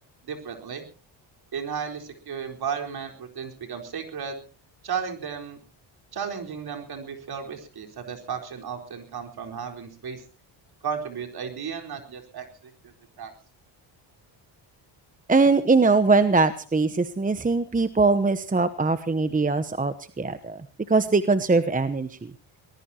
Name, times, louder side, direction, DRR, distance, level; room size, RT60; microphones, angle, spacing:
voice 1, 0.2-0.8 1.5-4.4 4.8-5.6 6.1-10.2 10.8-12.9 13.2-13.3, right 7 dB, 50° right, 4 dB, 4.5 m, -34 dB
voice 2, 15.3-20.6 20.9-22.3, right 3 dB, 15° right, 12 dB, 1.1 m, -21 dB
23.5 x 19.5 x 2.9 m, 0.38 s
cardioid pair, 120°, 47 cm